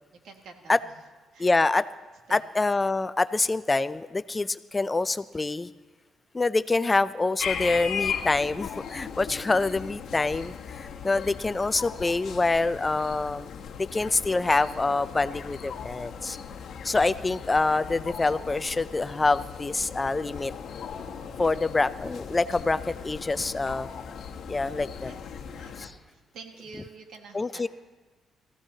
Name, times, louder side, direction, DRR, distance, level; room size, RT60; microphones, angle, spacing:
voice 1, 0.2-0.9 1.3-1.5 2.3-2.4 16.3-16.5 25.0-27.7, right 4 dB, 75° right, 3 dB, 1.8 m, -48 dB
voice 2, 1.4-1.8 2.3-5.7 6.3-13.5 13.8-16.4 16.8-20.5 21.4-23.9 24.5-25.1 25.8-25.9 27.3-27.7, left 3 dB, 20° left, 15 dB, 0.4 m, -26 dB
sound 1, 7.4-25.9, left 7 dB, 65° left, 1.1 m, -38 dB
22.0 x 15.0 x 2.8 m, 1.2 s
cardioid pair, 90°, 0 cm